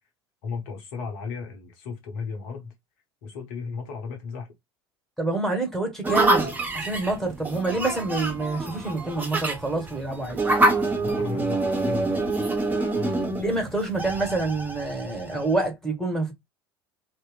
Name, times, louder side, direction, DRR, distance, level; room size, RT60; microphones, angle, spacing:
voice 1, 0.4-2.7 3.2-4.5 10.9-13.3, left 5 dB, 60° left, 0.9 m, -35 dB
voice 2, 5.2-10.4 13.4-16.3, right 2 dB, 5° left, 1.2 m, -27 dB
sound 1, 6.0-15.6, right 2 dB, 15° right, 0.7 m, -26 dB
2.9 x 2.1 x 2.3 m
figure-of-eight pair, 70°, 13 cm